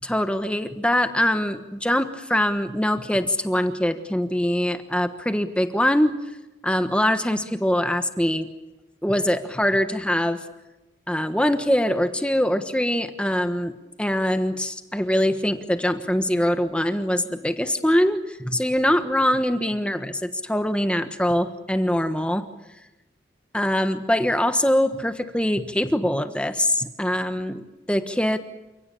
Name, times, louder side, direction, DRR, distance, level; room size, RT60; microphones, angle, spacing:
voice 1, 0.0-6.1 6.6-8.5 9.0-10.4 11.1-22.5 23.5-28.4, left 1 dB, 5° left, 8 dB, 1.2 m, -23 dB
28.5 x 17.5 x 8.6 m, 1.0 s
head